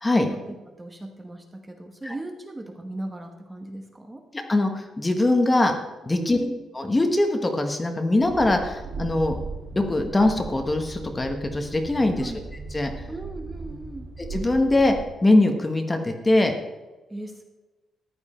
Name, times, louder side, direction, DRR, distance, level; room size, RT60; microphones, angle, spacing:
voice 1, 0.3-4.2 6.2-6.6 12.2-12.4 13.1-14.1 17.1-17.4, right 1 dB, 10° right, 5 dB, 1.2 m, -37 dB
voice 2, 4.3-5.7 6.0-6.4 6.7-9.4 9.7-12.3 12.7-12.9 14.2-14.9 15.2-16.5, left 2 dB, 15° left, 4 dB, 1.4 m, -22 dB
Train, 8.2-15.1, right 3 dB, 70° right, 5.1 m, -37 dB
14.5 x 11.0 x 4.4 m, 1.2 s
cardioid pair, 165°, 0 cm